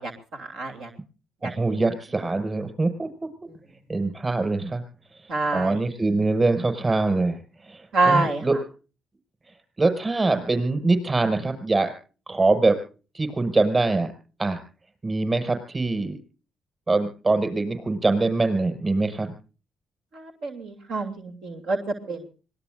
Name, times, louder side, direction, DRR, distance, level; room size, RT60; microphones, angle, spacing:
voice 1, 0.0-0.9 1.4-1.5 5.3-5.8 7.9-8.4 20.1-22.3, right 3 dB, 80° right, 3 dB, 3.0 m, -26 dB
voice 2, 1.4-3.3 3.9-4.8 5.5-8.5 9.8-11.9 12.3-12.8 13.1-14.1 14.4-14.6 15.0-16.2 16.9-19.3, right 3 dB, 25° right, 9 dB, 6.0 m, -23 dB
25.5 x 20.0 x 2.6 m, 0.37 s
cardioid pair, 90°, 0 cm